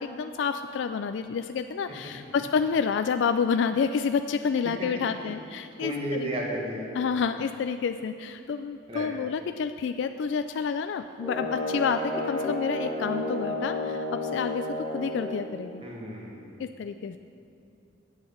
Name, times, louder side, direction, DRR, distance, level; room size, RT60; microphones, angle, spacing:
voice 1, 0.0-6.3 6.9-15.8 16.6-17.2, left 6 dB, 65° left, 9 dB, 0.3 m, -29 dB
voice 2, 5.8-6.9 8.9-9.1 15.8-16.5, right 1 dB, 30° right, -2 dB, 1.6 m, -33 dB
sound 1, 11.2-15.4, left 1 dB, 10° right, 1.8 m, -31 dB
8.2 x 7.9 x 7.1 m, 2.6 s
head